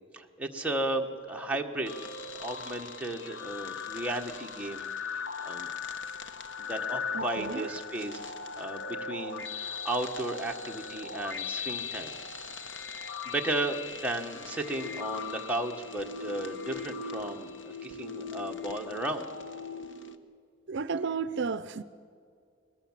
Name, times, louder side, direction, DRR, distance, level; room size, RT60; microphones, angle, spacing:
voice 1, 0.1-1.9 2.4-4.9 5.4-5.7 6.6-12.2 13.2-19.3, right 1 dB, 5° right, 1 dB, 1.5 m, -34 dB
sound 1, 1.8-20.1, left 5 dB, 60° left, 1.2 m, -39 dB
voice 2, 7.1-7.7 20.7-21.8, right 5 dB, 60° right, 14 dB, 0.5 m, -33 dB
22.0 x 20.0 x 7.4 m, 2.3 s
head